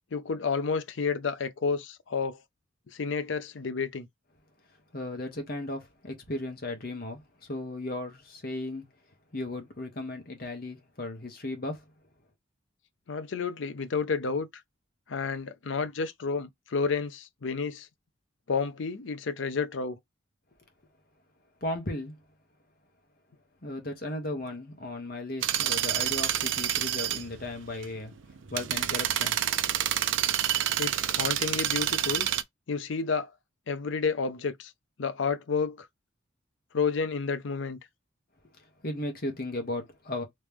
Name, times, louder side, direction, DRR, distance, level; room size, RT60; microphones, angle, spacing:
voice 1, 0.1-2.4 2.9-4.1 13.1-14.5 15.1-17.9 18.5-20.0 30.8-32.3 32.7-33.3 33.7-34.7 35.0-35.9 36.7-37.8, left 5 dB, 70° left, 0.6 m, -30 dB
voice 2, 4.9-8.9 9.3-11.8 21.6-22.1 23.6-28.1 28.5-29.4 38.8-40.2, left 1 dB, 50° left, 1.2 m, -36 dB
sound 1, 25.4-32.4, right 11 dB, 70° right, 0.4 m, -28 dB
3.2 x 3.0 x 3.5 m
head